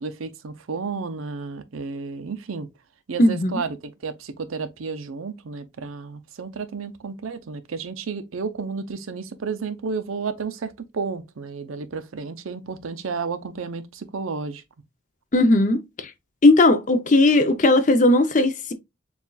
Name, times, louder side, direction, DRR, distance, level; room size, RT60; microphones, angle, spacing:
voice 1, 0.0-2.7 3.1-14.6, right 5 dB, 85° right, 0.6 m, -32 dB
voice 2, 3.2-3.6 15.3-16.1 16.4-18.7, left 2 dB, 40° left, 0.6 m, -17 dB
6.9 x 2.4 x 2.3 m
head